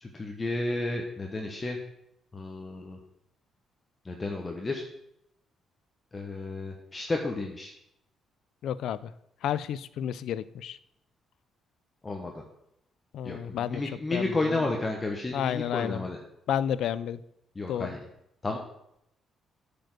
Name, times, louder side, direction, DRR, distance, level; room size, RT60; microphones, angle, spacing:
voice 1, 0.0-1.8 2.3-3.0 4.0-4.8 6.1-7.7 12.0-12.4 13.2-16.2 17.6-18.0 18.4-18.6, left 2 dB, 25° left, 1 dB, 1.1 m, -32 dB
voice 2, 8.6-9.1 9.4-10.8 13.1-14.7 15.3-16.1 16.5-17.2 17.7-17.9, left 10 dB, 75° left, 17 dB, 0.4 m, -31 dB
9.1 x 5.2 x 6.1 m, 0.79 s
cardioid pair, 90°, 0 cm